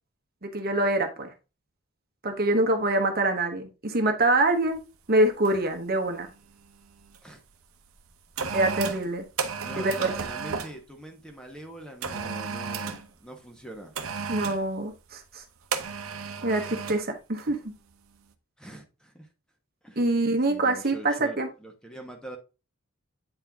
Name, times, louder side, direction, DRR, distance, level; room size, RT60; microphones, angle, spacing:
voice 1, 0.4-1.3 2.2-4.8 5.1-6.3 8.5-9.2 9.8-10.1 14.3-15.4 16.4-17.6 20.0-21.5, right 2 dB, 45° right, 1.1 m, -25 dB
sound 1, 4.6-4.8 5.4-5.7 6.0-7.2 7.8-10.8 12.0-13.1 13.9-14.7 15.7-17.1 17.4-17.6, right 5 dB, 80° right, 0.9 m, -34 dB
voice 2, 9.6-13.9 18.6-19.3 19.8-20.0 20.5-22.4, right 1 dB, 5° left, 1.2 m, -43 dB
8.9 x 4.4 x 3.5 m
head